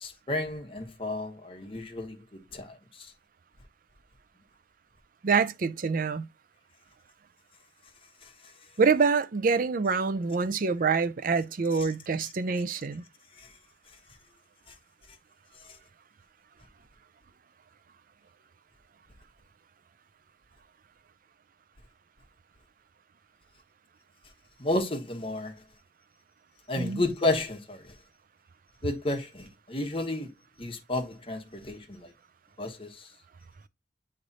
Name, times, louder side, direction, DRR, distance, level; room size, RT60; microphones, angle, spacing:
voice 1, 0.0-3.1 8.2-8.3 11.7-11.9 13.4-13.5 24.6-25.5 26.7-27.9 28.8-30.3 30.6-32.1 32.6-33.1, left 2 dB, 30° left, 1.2 m, -32 dB
voice 2, 5.2-6.3 8.8-13.0 26.8-27.0, right 5 dB, 50° right, 0.5 m, -26 dB
8.6 x 3.2 x 4.0 m
head